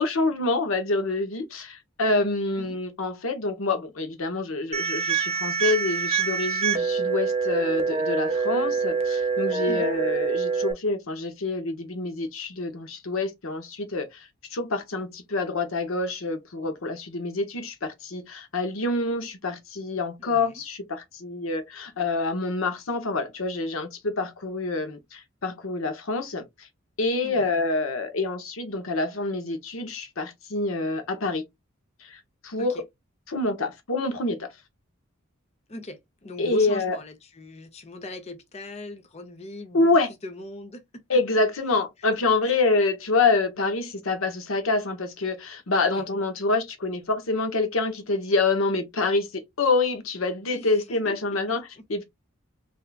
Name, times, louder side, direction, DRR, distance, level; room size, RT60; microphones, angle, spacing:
voice 1, 0.0-26.7 27.0-31.4 32.0-32.7 33.3-34.5 36.4-37.0 39.7-40.1 41.1-51.6 51.9-52.0, left 3 dB, 80° left, 0.9 m, -26 dB
sound 1, 4.7-10.7, right 5 dB, 30° right, 0.5 m, -25 dB
voice 2, 20.2-20.6 27.2-27.5 32.6-32.8 35.7-39.9 40.2-41.0 42.0-42.1 42.4-42.6 45.9-46.0 50.5-51.8, left 2 dB, 30° left, 0.6 m, -40 dB
3.4 x 2.7 x 2.3 m
head